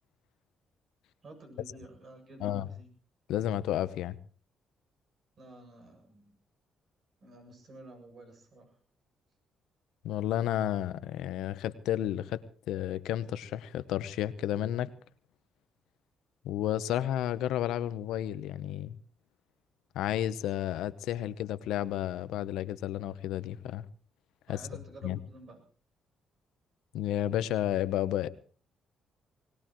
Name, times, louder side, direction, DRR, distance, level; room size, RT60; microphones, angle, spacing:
voice 1, 1.2-2.9 5.4-6.4 7.2-8.8 24.5-25.6, right 2 dB, 50° right, 4 dB, 7.9 m, -51 dB
voice 2, 3.3-4.2 10.0-14.9 16.4-19.0 19.9-23.8 24.5-24.6 25.0-25.2 26.9-28.3, left 12 dB, 90° left, 13 dB, 0.9 m, -32 dB
22.0 x 19.5 x 3.1 m, 0.41 s
cardioid pair, 90°, 0 cm